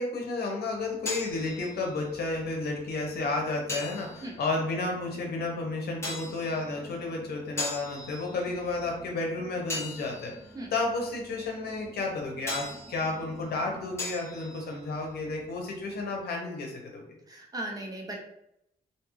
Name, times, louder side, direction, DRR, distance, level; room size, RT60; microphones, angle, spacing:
voice 1, 0.0-10.3 10.7-17.1, left 3 dB, 75° left, 0 dB, 0.7 m, -32 dB
sound 1, 0.6-16.2, left 2 dB, 15° left, 0.9 m, -42 dB
voice 2, 17.3-18.2, right 1 dB, 20° right, 0 dB, 0.5 m, -37 dB
2.7 x 2.3 x 3.0 m, 0.81 s
wide cardioid pair, 145°, 17 cm